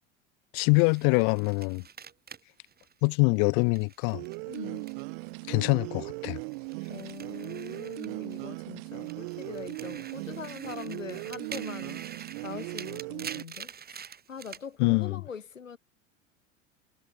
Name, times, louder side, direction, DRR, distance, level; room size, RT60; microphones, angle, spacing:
voice 1, 0.5-1.8 3.0-4.2 5.5-6.4 14.8-15.2, left 40 dB or more, 50° left, 1.5 m, -24 dB
sound 1, 0.7-5.3 5.6-8.6 8.9-14.7, right 7 dB, 25° right, 4.3 m, -46 dB
sound 2, 4.1-13.4, right 31 dB, 50° right, 0.8 m, -38 dB
voice 2, 4.5-4.9 6.9-14.0 14.3-15.8, left 6 dB, 85° left, 2.2 m, -42 dB
figure-of-eight pair, 80°, 38 cm